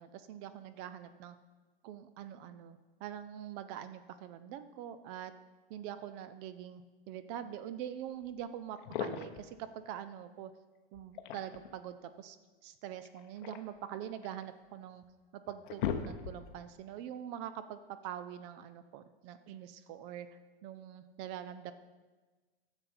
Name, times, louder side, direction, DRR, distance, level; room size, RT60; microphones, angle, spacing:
voice 1, 0.0-1.4 1.8-5.3 5.7-10.5 10.9-12.4 12.6-15.0 15.3-21.7, right 10 dB, 30° right, 12 dB, 0.4 m, -44 dB
sound 1, 8.3-8.4 8.7-9.5 10.9-11.8 13.0-14.4 15.0-15.1 15.5-16.6, left 9 dB, 55° left, 0.9 m, -39 dB
10.5 x 7.1 x 4.2 m, 1.3 s
hypercardioid pair, 140°, 30 cm